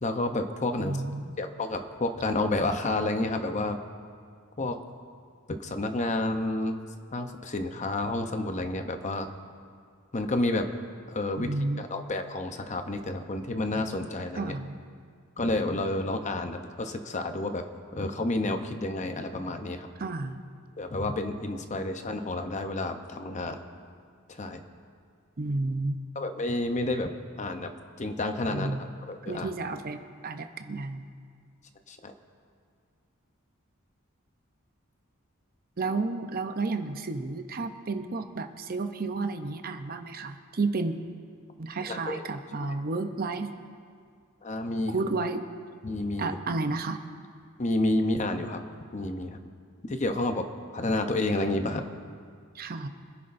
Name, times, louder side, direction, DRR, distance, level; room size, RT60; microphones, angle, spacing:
voice 1, 0.0-1.0 1.4-3.8 4.6-4.8 5.5-6.8 7.1-9.3 10.1-10.7 11.1-14.5 15.4-17.7 17.9-19.9 20.8-23.6 24.3-24.6 26.1-27.1 27.4-27.7 28.0-29.5 31.9-32.1 41.9-42.7 44.4-44.9 45.8-46.4 47.6-48.6 48.9-49.4 49.8-50.5 50.7-51.8, left 2 dB, 35° left, 6 dB, 0.7 m, -30 dB
voice 2, 0.8-1.3 11.4-11.8 14.4-14.7 20.0-20.4 25.4-26.0 28.5-28.8 29.3-31.1 35.8-41.0 41.6-43.5 44.9-45.4 46.2-47.0 52.5-52.9, right 3 dB, 45° right, 8 dB, 0.7 m, -31 dB
26.0 x 10.5 x 2.6 m, 2.1 s
head